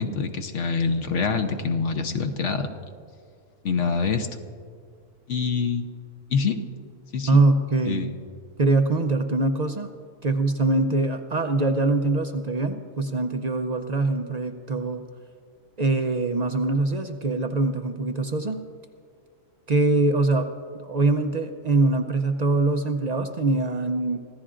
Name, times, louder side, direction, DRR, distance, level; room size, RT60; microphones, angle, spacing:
voice 1, 0.0-2.7 3.6-4.3 5.3-5.9 6.3-6.6 7.1-7.4 7.9-8.1, left 5 dB, 60° left, 6 dB, 1.1 m, -25 dB
voice 2, 7.3-8.1 8.6-9.9 10.2-15.0 15.8-18.6 19.7-20.5 20.7-24.2, right 2 dB, 50° right, 6 dB, 0.5 m, -23 dB
25.5 x 15.0 x 2.5 m, 2.1 s
omnidirectional pair, 1.5 m